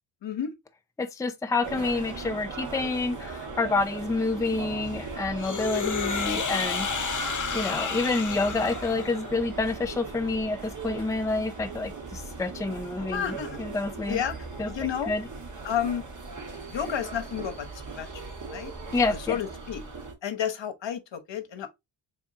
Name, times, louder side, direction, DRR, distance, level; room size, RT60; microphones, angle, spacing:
voice 1, 0.2-0.5 1.8-1.9 13.1-13.6 14.1-14.4 14.7-15.1 15.6-16.0 16.7-19.8 20.2-21.7, left 9 dB, 65° left, 0.9 m, -32 dB
voice 2, 1.0-7.1 7.5-13.3 13.6-14.2 14.6-14.7 15.1-15.2 18.9-19.4, left 3 dB, 5° left, 0.5 m, -28 dB
sound 1, 1.6-20.1, right 4 dB, 40° right, 1.7 m, -39 dB
sound 2, 5.4-9.4, left 6 dB, 40° left, 0.8 m, -31 dB
4.3 x 3.6 x 2.8 m
wide cardioid pair, 90°, 48 cm